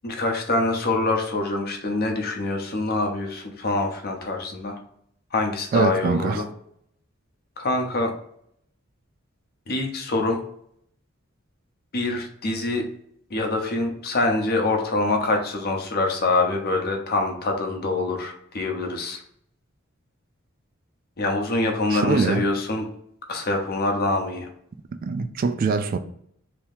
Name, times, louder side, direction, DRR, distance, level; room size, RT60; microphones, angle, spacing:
voice 1, 0.0-4.8 5.3-6.4 7.6-8.1 9.7-10.4 11.9-12.8 13.3-19.2 21.2-22.9 23.3-24.5, left 2 dB, 50° left, 0.8 m, -25 dB
voice 2, 5.7-6.4 21.9-22.4 25.0-26.0, right 4 dB, 45° right, 0.3 m, -23 dB
2.9 x 2.7 x 3.5 m
head